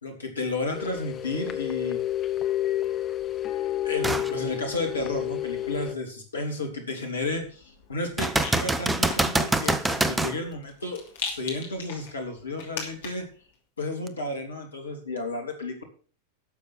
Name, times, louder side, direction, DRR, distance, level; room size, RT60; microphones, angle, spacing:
voice 1, 0.0-2.0 3.8-13.2 13.8-15.8, left 2 dB, 75° left, 3 dB, 3.0 m, -32 dB
sound 1, 0.7-5.9, left 12 dB, 25° left, 1.0 m, -30 dB
sound 2, 4.0-4.3 4.9-5.0 8.2-10.4 14.1-14.2, right 2 dB, 10° right, 0.8 m, -25 dB
Rattle, 7.3-13.4, left 5 dB, 55° left, 2.8 m, -40 dB
12.0 x 7.0 x 6.3 m, 0.41 s
figure-of-eight pair, 90°, 0 cm